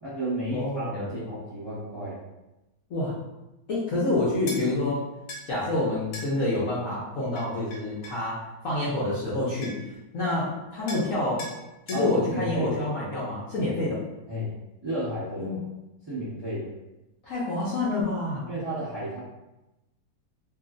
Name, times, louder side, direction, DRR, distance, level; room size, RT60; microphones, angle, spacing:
voice 1, 0.0-2.2 11.9-12.7 14.3-14.5 14.8-15.6 16.1-16.8 18.5-19.2, equal, 15° right, -11 dB, 1.0 m, -32 dB
voice 2, 0.5-1.2 2.9-3.1 3.7-5.0 5.5-9.7 10.1-11.4 11.9-14.0 15.4-15.6 17.2-18.5, left 2 dB, 60° left, -9 dB, 0.9 m, -27 dB
sound 1, 4.5-4.6 5.3-5.5 6.1-6.3 7.4-8.2 9.3-9.4 9.6-10.0 10.9-11.1 11.4-11.6 11.9-12.1, left 1 dB, 90° left, 1.5 m, -39 dB
2.9 x 2.5 x 2.4 m, 0.97 s
omnidirectional pair, 1.9 m